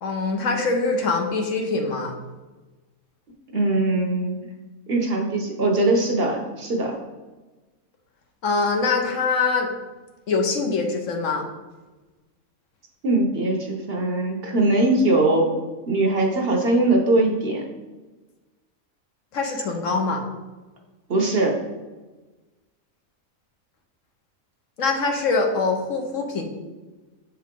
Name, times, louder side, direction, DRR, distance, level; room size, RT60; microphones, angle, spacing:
voice 1, 0.0-2.1 8.4-9.7 10.3-11.4 19.3-20.2 24.8-26.4, left 4 dB, 65° left, 3 dB, 1.2 m, -23 dB
voice 2, 3.5-4.4 4.9-7.0 13.0-15.6 15.8-17.6 21.1-21.6, right 2 dB, 50° right, 1 dB, 1.0 m, -21 dB
7.0 x 4.7 x 3.7 m, 1.2 s
omnidirectional pair, 1.4 m